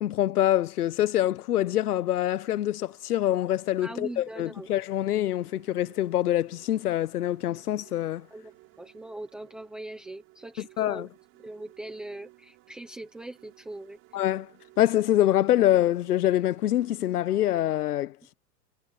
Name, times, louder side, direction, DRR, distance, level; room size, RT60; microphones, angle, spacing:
voice 1, 0.0-8.3 10.8-11.1 14.1-14.5 14.8-18.3, left 13 dB, 65° left, 1.1 m, -25 dB
sound 1, 0.8-0.9 1.4-17.5, right 22 dB, 25° right, 6.6 m, -58 dB
voice 2, 3.8-4.7 8.3-8.5 8.8-11.1 11.4-14.0, right 1 dB, ahead, 0.6 m, -41 dB
supercardioid pair, 175°, 50 cm